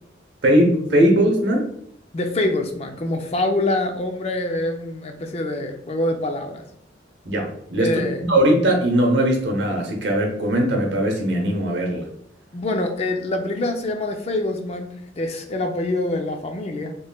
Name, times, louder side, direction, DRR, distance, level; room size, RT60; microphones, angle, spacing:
voice 1, 0.4-1.7 7.3-7.9 8.2-12.0, right 1 dB, 70° right, 1 dB, 0.9 m, -19 dB
voice 2, 2.1-6.6 7.8-8.2 12.5-17.0, left 1 dB, 35° left, 5 dB, 0.4 m, -25 dB
4.2 x 3.1 x 2.2 m, 0.70 s
head